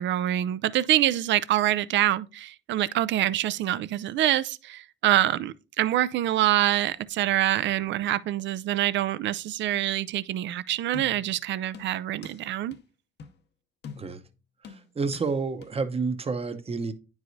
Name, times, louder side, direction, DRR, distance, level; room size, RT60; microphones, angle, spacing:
voice 1, 0.0-12.8, right 13 dB, 70° right, 0.4 m, -25 dB
sound 1, 10.9-11.4 11.7-12.4 12.7-12.8 13.2-13.4 13.8-14.3 14.6-15.3 15.6-15.7, left 6 dB, 60° left, 0.7 m, -44 dB
voice 2, 14.7-16.9, right 4 dB, 30° right, 0.8 m, -29 dB
9.4 x 4.7 x 2.7 m
cardioid pair, 90°, 20 cm